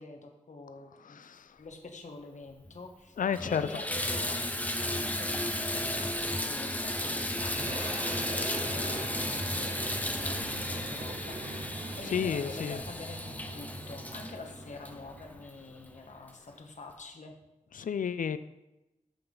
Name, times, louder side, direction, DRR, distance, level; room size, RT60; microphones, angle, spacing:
voice 1, 0.0-1.2 1.6-3.2 3.4-11.4 12.0-17.3, left 3 dB, 65° left, 3 dB, 1.3 m, -46 dB
voice 2, 1.0-1.6 3.2-3.7 12.1-12.8 17.7-18.4, left 7 dB, 90° left, 14 dB, 0.4 m, -31 dB
Water tap faucet / Bathtub (filling or washing), 2.7-2.8 3.2-15.6 16.3-16.4 16.9-17.0, left 1 dB, 10° left, 0.9 m, -34 dB
Boom, 7.2-16.1, right 2 dB, 55° right, 1.5 m, -42 dB
13.5 x 5.6 x 3.9 m, 0.96 s
wide cardioid pair, 115°, 13 cm